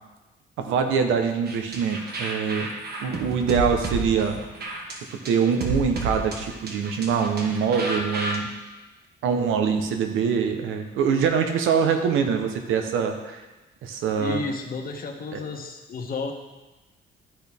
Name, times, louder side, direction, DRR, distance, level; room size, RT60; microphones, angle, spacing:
voice 1, 0.6-2.7 3.0-4.4 4.9-8.5 9.2-13.4 13.8-14.4 15.3-15.4, right 6 dB, 85° right, 5 dB, 0.9 m, -24 dB
sound 1, 1.5-8.4, right 2 dB, 55° right, 1.4 m, -32 dB
voice 2, 14.2-16.3, left 4 dB, 45° left, 3 dB, 1.2 m, -32 dB
12.5 x 4.3 x 3.5 m, 1.1 s
cardioid pair, 90°, 20 cm